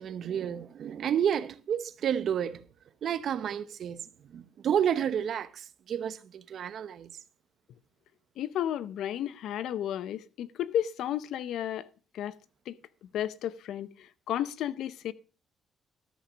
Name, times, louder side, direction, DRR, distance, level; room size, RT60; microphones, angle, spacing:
voice 1, 0.0-2.6 3.0-7.1, right 9 dB, 65° right, 0.8 m, -31 dB
voice 2, 8.4-11.9 12.1-12.4 12.7-12.8 13.0-15.1, left 11 dB, 80° left, 0.7 m, -33 dB
13.0 x 6.0 x 6.3 m
cardioid pair, 90°, 0 cm